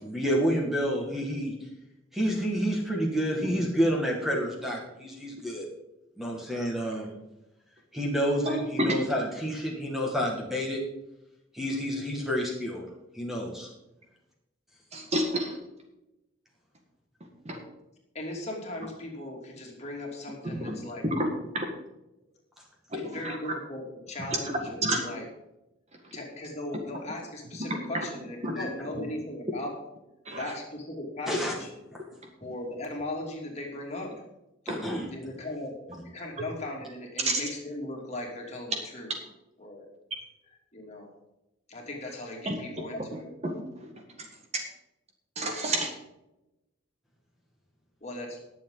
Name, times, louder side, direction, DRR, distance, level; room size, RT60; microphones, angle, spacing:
voice 1, 0.0-1.5 2.1-5.7 6.2-7.2 7.9-10.8 11.5-12.8 13.1-13.7 28.6-28.7 31.3-31.5 34.7-35.1, equal, ahead, -2 dB, 1.9 m, -29 dB
voice 2, 14.9-15.6 17.4-17.6 20.6-20.7 21.0-21.3 21.5-21.6 22.9-23.4 24.3-25.1 28.4-28.5 30.2-30.5 34.7-34.8 37.3-37.4 42.4-42.6 43.4-43.9 44.5-44.7 45.3-45.9, right 1 dB, 30° right, 3 dB, 1.6 m, -29 dB
voice 3, 18.1-21.0 22.9-25.3 26.1-29.7 30.3-31.7 32.4-34.1 35.1-39.1 39.6-39.9 40.7-41.1 41.7-43.3 48.0-48.4, left 1 dB, 35° left, -1 dB, 2.8 m, -38 dB
20.0 x 7.4 x 3.9 m, 0.95 s
head